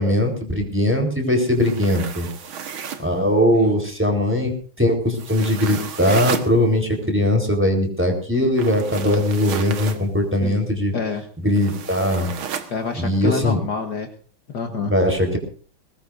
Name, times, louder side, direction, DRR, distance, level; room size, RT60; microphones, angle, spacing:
voice 1, 0.0-2.3 3.0-10.9 11.4-12.3 13.0-13.6 14.9-15.4, left 1 dB, 5° right, 2 dB, 4.2 m, -20 dB
sound 1, 1.5-3.1 5.1-6.5 8.5-10.0 11.6-12.7, right 7 dB, 75° right, 2.3 m, -32 dB
voice 2, 10.9-11.2 12.7-14.1 14.5-14.9, left 5 dB, 55° left, 4 dB, 1.9 m, -27 dB
22.0 x 19.0 x 2.7 m, 0.41 s
omnidirectional pair, 2.3 m